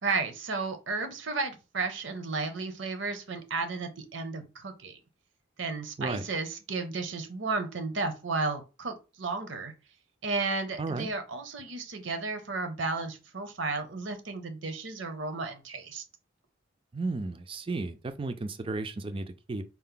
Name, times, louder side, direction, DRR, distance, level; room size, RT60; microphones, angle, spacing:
voice 1, 0.0-5.0 5.6-9.7 10.2-16.0, right 3 dB, 65° right, 0.7 m, -33 dB
voice 2, 16.9-19.6, right 3 dB, 25° right, 0.4 m, -34 dB
4.4 x 2.1 x 3.7 m
head